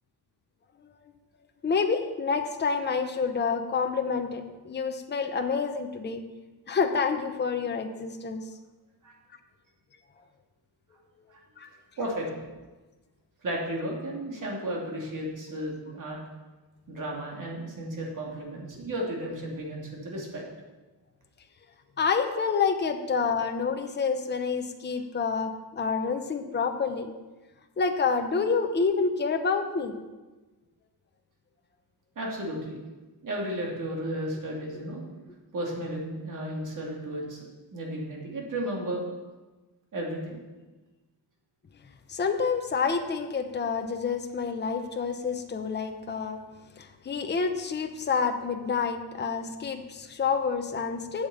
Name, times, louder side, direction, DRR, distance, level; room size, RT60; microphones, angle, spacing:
voice 1, 1.6-6.2 6.7-8.4 11.6-11.7 22.0-27.1 27.8-29.9 42.1-46.4 46.8-51.3, left 5 dB, 25° left, 6 dB, 0.8 m, -28 dB
voice 2, 13.4-16.2 16.9-20.4 32.2-32.8 33.2-35.0 35.5-39.0 39.9-40.4, right 1 dB, 50° right, -2 dB, 2.8 m, -34 dB
8.5 x 7.3 x 7.1 m, 1.2 s
wide cardioid pair, 145°, 39 cm